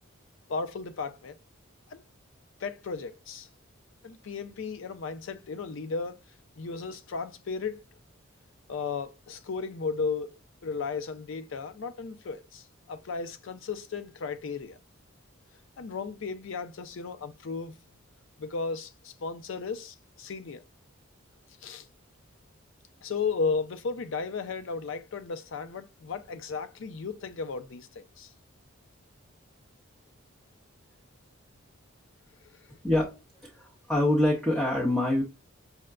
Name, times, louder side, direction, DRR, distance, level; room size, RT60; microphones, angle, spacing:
voice 1, 0.5-1.4 1.9-2.0 2.6-3.5 4.0-6.2 6.6-7.8 8.7-10.3 10.6-14.8 15.8-17.7 18.4-20.6 21.6-21.8 23.0-28.3 32.7-32.8, left 4 dB, 65° left, 0.4 m, -35 dB
voice 2, 33.4-35.2, left 1 dB, 5° left, 0.6 m, -25 dB
5.5 x 2.1 x 2.3 m
head